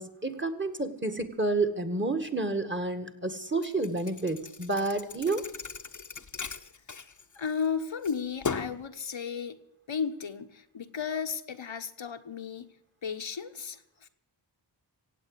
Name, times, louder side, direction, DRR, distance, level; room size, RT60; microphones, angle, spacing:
voice 1, 0.0-5.4, right 2 dB, 25° right, 8 dB, 1.9 m, -30 dB
Thump thud, 3.6-7.7 8.0-8.9, left 5 dB, 40° left, 0.9 m, -38 dB
voice 2, 7.3-9.6 9.9-14.1, left 6 dB, 90° left, 7 dB, 1.2 m, -34 dB
16.5 x 8.5 x 8.2 m, 0.88 s
wide cardioid pair, 55°, 45 cm